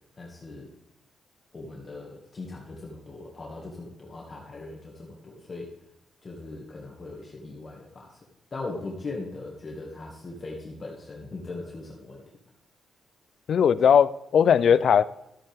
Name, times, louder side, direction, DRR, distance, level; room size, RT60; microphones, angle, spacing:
voice 1, 0.2-0.7 1.5-5.7 6.2-8.2 8.5-12.2, left 3 dB, 35° left, -1 dB, 1.9 m, -39 dB
voice 2, 13.5-15.0, left 8 dB, 60° left, 17 dB, 0.4 m, -19 dB
13.5 x 8.7 x 3.5 m, 0.86 s
cardioid pair, 120°, 0 cm